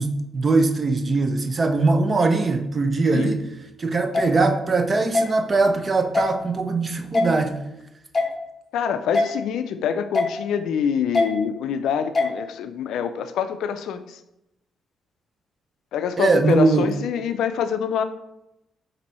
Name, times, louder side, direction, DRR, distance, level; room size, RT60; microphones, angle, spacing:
voice 1, 0.0-3.5 3.8-7.6 16.2-16.9, right 3 dB, 25° right, 7 dB, 0.4 m, -21 dB
sound 1, 4.1-4.3 5.1-5.3 6.1-6.3 7.1-7.3 8.1-8.3 9.1-9.3 10.1-10.3 11.1-11.3 12.1-12.3, left 3 dB, 25° left, 0.5 m, -20 dB
voice 2, 8.7-14.0 15.9-18.0, left 7 dB, 80° left, 10 dB, 0.3 m, -25 dB
4.1 x 2.6 x 4.2 m, 0.86 s
cardioid pair, 155°, 0 cm